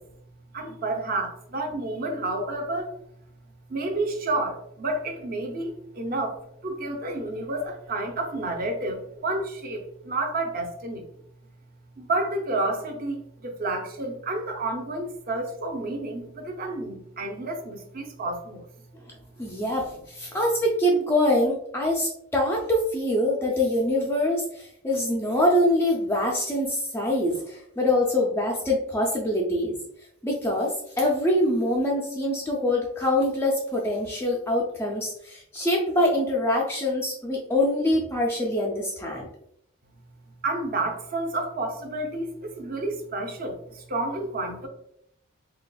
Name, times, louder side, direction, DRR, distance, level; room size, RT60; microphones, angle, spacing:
voice 1, 0.5-2.9 3.7-6.4 6.6-11.0 12.0-18.7 40.4-44.7, right 2 dB, 40° right, 4 dB, 0.6 m, -30 dB
voice 2, 19.4-29.8 30.2-39.3, left 1 dB, 10° left, -3 dB, 0.4 m, -24 dB
4.0 x 2.8 x 2.2 m, 0.74 s
head